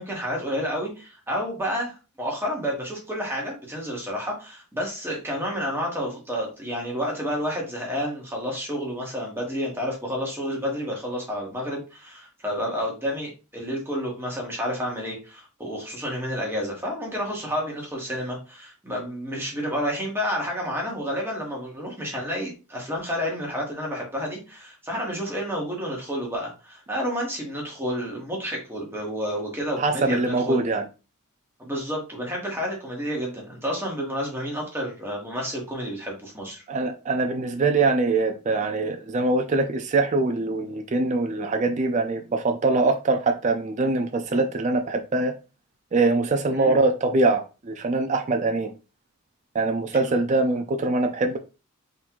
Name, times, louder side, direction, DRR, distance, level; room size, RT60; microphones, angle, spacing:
voice 1, 0.0-30.6 31.6-36.6 46.5-46.8, equal, 10° right, 1.3 m, -30 dB
voice 2, 29.8-30.8 36.7-45.3 45.9-48.7 49.5-51.4, right 3 dB, 35° right, 0.4 m, -23 dB
3.8 x 2.5 x 4.5 m
head